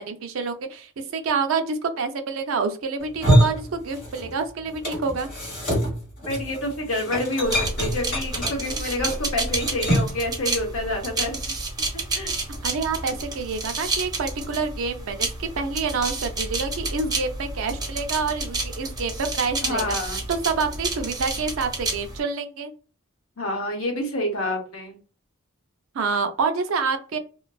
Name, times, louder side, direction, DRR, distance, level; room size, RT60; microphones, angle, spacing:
voice 1, 0.0-5.3 12.6-20.0 20.3-22.7 25.9-27.2, right 4 dB, 75° right, 8 dB, 0.4 m, -27 dB
sound 1, 3.0-4.4 4.7-10.2, equal, 40° left, 1.4 m, -25 dB
voice 2, 6.3-11.4 11.9-12.3 19.6-20.2 23.4-25.0, left 1 dB, 80° left, 3 dB, 0.7 m, -28 dB
sound 2, 7.4-22.2, right 3 dB, 20° right, 0.5 m, -30 dB
2.5 x 2.2 x 2.2 m, 0.36 s
head